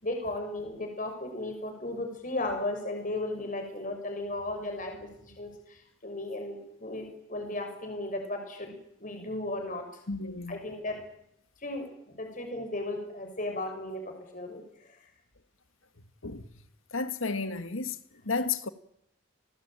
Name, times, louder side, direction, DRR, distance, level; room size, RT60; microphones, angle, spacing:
voice 1, 0.0-9.8 10.5-11.0 11.6-11.9 12.2-14.6, left 2 dB, 40° left, 6.5 m, -35 dB
voice 2, 10.1-10.5 16.2-16.4 16.9-18.0 18.3-18.7, left 4 dB, 80° left, 1.9 m, -32 dB
29.0 x 20.0 x 9.1 m
head